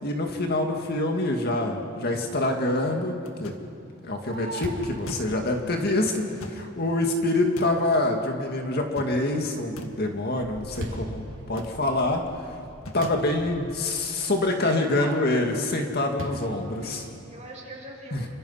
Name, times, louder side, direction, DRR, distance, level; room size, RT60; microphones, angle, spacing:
voice 1, 0.0-3.5 4.0-12.5 12.9-17.1 18.1-18.3, left 2 dB, 50° left, 3 dB, 2.0 m, -26 dB
sound 1, 3.3-4.1 4.3-5.6 6.2-7.1 7.4-8.0 8.7-9.3 9.6-10.1 10.5-11.0 11.4-12.0 12.7-13.8 15.0-15.1 15.5-15.7, left 1 dB, 90° left, 1.7 m, -42 dB
Fireworks, 3.8-7.3 7.8-7.9 8.4-8.8 9.2-14.1 16.2-17.5, right 1 dB, 65° right, 3.6 m, -40 dB
voice 2, 14.6-15.4 16.8-18.3, right 2 dB, 35° right, -2 dB, 6.1 m, -41 dB
29.0 x 25.0 x 5.7 m, 2.5 s
head